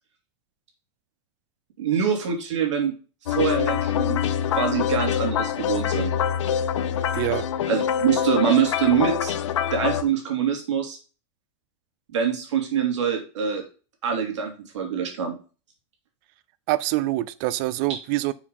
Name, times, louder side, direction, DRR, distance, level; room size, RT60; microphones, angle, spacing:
voice 1, 1.8-2.9 3.3-4.2 4.5-6.1 7.7-9.3 9.7-11.0 12.1-13.6 14.0-15.4, right 7 dB, 85° right, 2.9 m, -24 dB
sound 1, 3.3-10.0, left 9 dB, 85° left, 0.9 m, -25 dB
voice 2, 7.1-7.5 16.7-18.3, right 17 dB, 45° right, 0.6 m, -25 dB
7.1 x 4.8 x 5.5 m
supercardioid pair, 145°, 15 cm